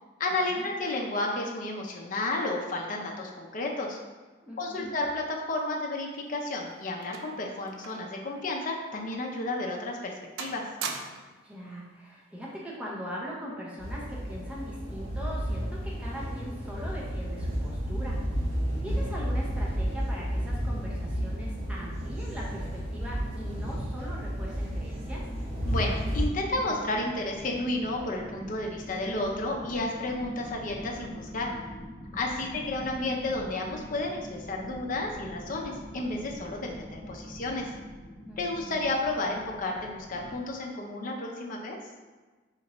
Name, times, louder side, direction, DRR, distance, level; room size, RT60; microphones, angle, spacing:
voice 1, 0.2-4.0 4.6-10.1 10.4-10.6 25.6-31.5 32.1-37.7 38.4-41.8, left 2 dB, 45° left, 0 dB, 0.5 m, -32 dB
voice 2, 4.4-4.9 11.4-18.2 18.8-25.2 32.3-32.5 38.3-38.8, equal, 5° right, -5 dB, 0.7 m, -41 dB
sound 1, 6.1-8.2 8.5-8.6 9.3-9.4 9.8-10.1 10.4-11.4 12.4-12.7, right 5 dB, 75° right, 0.4 m, -40 dB
sound 2, 13.8-26.2, equal, 35° right, 0.9 m, -32 dB
sound 3, 25.9-40.3, equal, 25° left, 1.2 m, -44 dB
4.3 x 2.6 x 3.0 m, 1.3 s
head